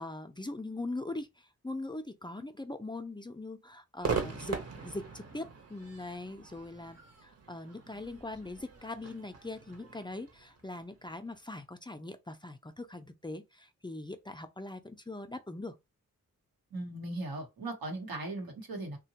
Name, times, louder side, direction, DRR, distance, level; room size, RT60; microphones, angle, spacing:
voice 1, 0.0-4.6 4.8-15.7, left 2 dB, 15° left, 0.4 m, -41 dB
Crowd / Fireworks, 4.0-11.3, right 5 dB, 45° right, 0.8 m, -40 dB
voice 2, 16.7-19.0, right 2 dB, 90° right, 1.0 m, -38 dB
2.8 x 2.2 x 2.8 m
cardioid pair, 40°, 35 cm